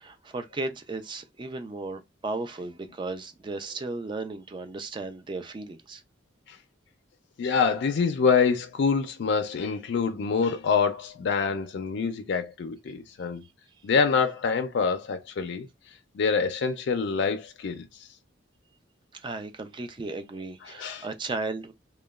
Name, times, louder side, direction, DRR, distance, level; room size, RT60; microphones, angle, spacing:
voice 1, 0.0-6.0 19.1-21.7, right 3 dB, 25° right, 0.4 m, -35 dB
voice 2, 7.4-13.4 13.8-15.7 16.1-18.1 20.8-21.1, left 5 dB, 65° left, 0.4 m, -26 dB
2.9 x 2.1 x 2.2 m
head